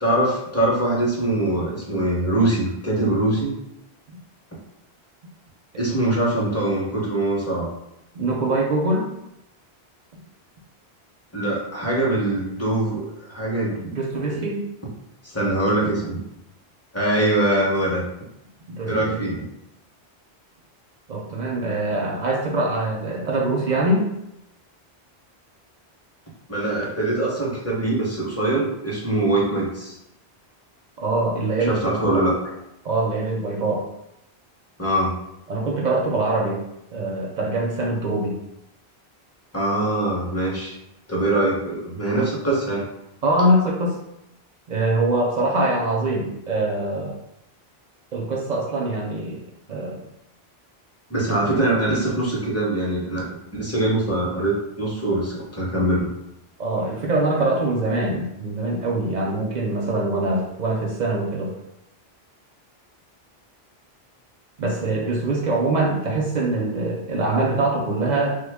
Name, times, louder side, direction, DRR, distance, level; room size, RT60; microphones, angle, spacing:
voice 1, 0.0-3.5 5.8-7.7 11.3-13.9 14.3-14.5 15.2-16.2 16.9-18.0 18.9-19.4 26.5-29.9 31.7-32.3 34.8-35.1 39.5-40.7 41.1-42.9 51.1-53.3 53.5-56.1, right 1 dB, 15° left, -4 dB, 0.7 m, -23 dB
voice 2, 8.1-9.1 13.9-14.6 18.7-19.2 21.1-24.1 31.0-31.8 32.1-32.2 32.8-33.9 35.5-36.6 36.9-38.4 43.2-43.9 44.7-47.1 48.1-50.0 56.6-61.5 64.6-68.4, right 2 dB, 55° right, 0 dB, 0.6 m, -23 dB
3.3 x 2.1 x 3.4 m, 0.83 s
omnidirectional pair, 1.1 m